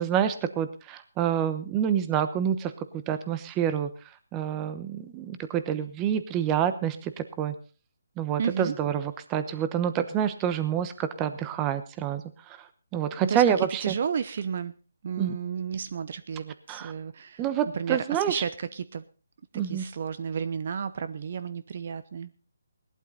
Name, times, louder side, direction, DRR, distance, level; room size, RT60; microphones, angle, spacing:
voice 1, 0.0-3.9 4.3-7.5 8.2-13.9 15.2-15.3 16.7-16.9 17.4-18.4 19.5-19.8, right 9 dB, 15° right, 11 dB, 1.0 m, -28 dB
voice 2, 8.4-8.7 13.2-13.4 13.8-14.8 15.0-17.4 17.7-19.0 19.6-22.3, right 6 dB, 45° right, 14 dB, 0.8 m, -32 dB
18.0 x 12.0 x 4.1 m, 0.35 s
hypercardioid pair, 160°, 0 cm